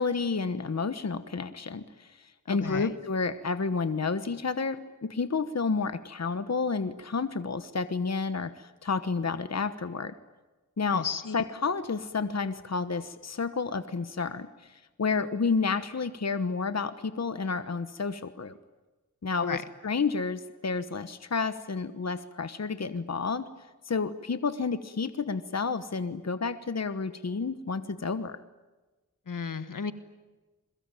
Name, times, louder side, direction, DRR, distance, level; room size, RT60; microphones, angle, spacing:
voice 1, 0.0-10.1 10.8-11.1 11.3-18.6 19.2-23.5 23.8-28.4, left 4 dB, 55° left, 11 dB, 1.2 m, -30 dB
voice 2, 2.5-2.9 10.9-11.3 19.4-19.6 29.3-29.9, left 6 dB, 80° left, 11 dB, 1.5 m, -33 dB
29.0 x 22.5 x 9.1 m, 1.2 s
wide cardioid pair, 55°, 32 cm